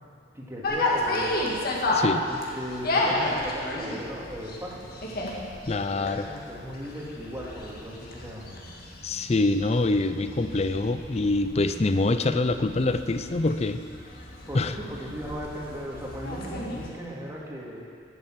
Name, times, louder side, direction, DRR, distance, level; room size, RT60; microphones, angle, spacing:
voice 1, 0.3-1.6 2.2-4.9 5.9-8.5 14.5-17.8, equal, 15° right, -4 dB, 2.2 m, -37 dB
sound 1, 0.6-16.9, left 2 dB, 55° left, 1.9 m, -32 dB
voice 2, 1.9-2.3 5.7-6.3 9.0-13.8 14.5-14.7, left 2 dB, 35° left, 10 dB, 0.5 m, -25 dB
11.0 x 8.9 x 7.5 m, 2.3 s
head